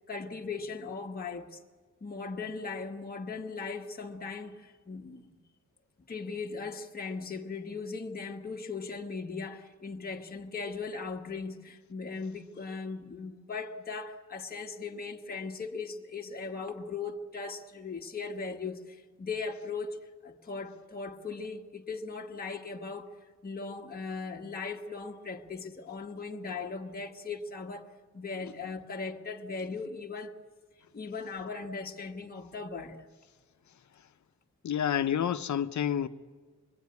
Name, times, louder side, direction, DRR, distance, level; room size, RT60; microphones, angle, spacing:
voice 1, 0.1-1.6 2.0-5.3 6.1-23.1 23.4-30.4 30.9-33.1, left 4 dB, 30° left, 1.3 m, -38 dB
voice 2, 34.6-36.1, left 9 dB, 70° left, 0.8 m, -29 dB
26.5 x 23.0 x 9.6 m
wide cardioid pair, 175°, 31 cm